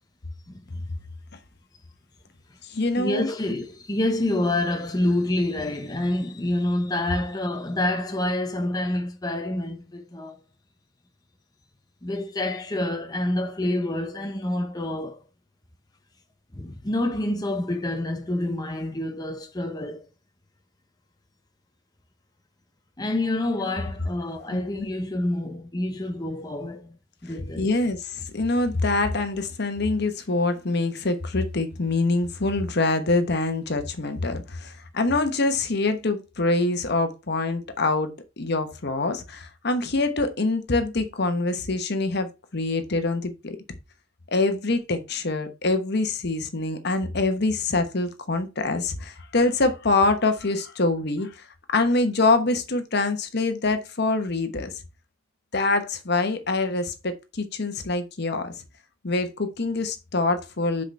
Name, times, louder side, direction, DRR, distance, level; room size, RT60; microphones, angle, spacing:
voice 1, 0.5-0.8 2.9-10.4 12.0-15.2 16.5-20.0 23.0-27.0 27.2-27.7, left 1 dB, 20° left, 0.8 m, -27 dB
voice 2, 2.6-3.3 24.5-24.9 27.6-43.6 44.3-54.8 55.5-58.6 59.0-60.8, left 2 dB, 55° left, 1.1 m, -25 dB
6.4 x 4.9 x 4.7 m
head